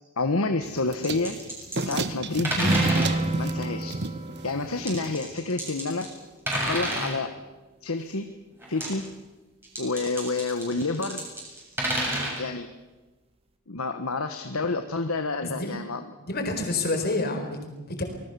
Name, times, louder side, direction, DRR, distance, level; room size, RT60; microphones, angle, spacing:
voice 1, 0.2-1.4 1.8-2.7 3.3-4.0 4.4-6.1 6.5-7.3 7.8-8.3 8.7-9.0 9.8-11.2 12.4-12.7 13.7-16.1, left 3 dB, 85° left, 7 dB, 1.4 m, -29 dB
sound 1, 0.6-5.3, right 3 dB, 55° right, 1.1 m, -35 dB
sound 2, 1.0-2.0 2.4-3.2 4.9-6.2 6.5-7.2 8.6-9.1 9.6-12.4, right 1 dB, 10° right, 7.5 m, -30 dB
sound 3, 2.5-6.3, right 2 dB, 30° right, 2.5 m, -29 dB
voice 2, 15.4-15.7 16.2-18.0, left 2 dB, 50° left, 5 dB, 4.6 m, -28 dB
25.5 x 20.0 x 7.0 m, 1.1 s
head